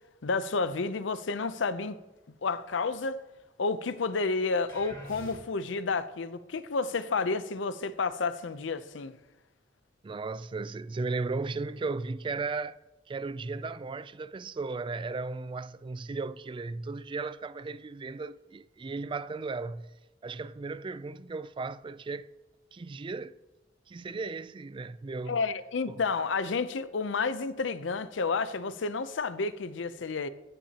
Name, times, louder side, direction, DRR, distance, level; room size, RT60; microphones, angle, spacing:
voice 1, 0.2-2.0 2.4-3.2 3.6-9.1 25.3-30.3, left 4 dB, 90° left, 0.6 m, -30 dB
sound 1, 4.7-5.8, equal, 25° left, 3.0 m, -46 dB
voice 2, 10.0-12.8 13.1-19.9 20.2-22.3 22.7-23.4 23.9-25.4 25.9-26.0, right 3 dB, 25° right, 0.3 m, -36 dB
16.0 x 10.0 x 2.9 m
head